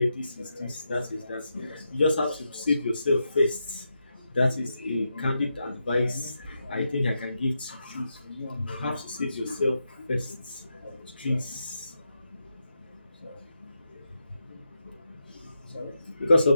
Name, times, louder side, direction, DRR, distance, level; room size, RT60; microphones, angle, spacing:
voice 1, 0.0-3.9 4.3-12.0 12.3-12.4 13.2-14.0 14.5-16.5, left 2 dB, 45° left, 1.1 m, -28 dB
6.7 x 2.4 x 2.3 m
figure-of-eight pair, 155°, 7 cm